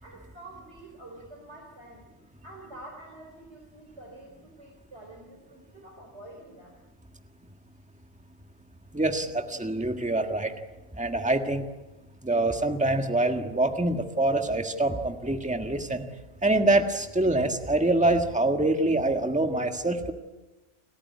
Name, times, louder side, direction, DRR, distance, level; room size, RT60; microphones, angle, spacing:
voice 1, 0.0-6.8, right 1 dB, 75° right, 1 dB, 4.5 m, -47 dB
voice 2, 8.9-10.5 11.0-11.6 12.2-16.0 16.4-20.1, right 2 dB, 5° right, 4 dB, 1.6 m, -25 dB
30.0 x 14.0 x 9.7 m, 1.1 s
omnidirectional pair, 1.2 m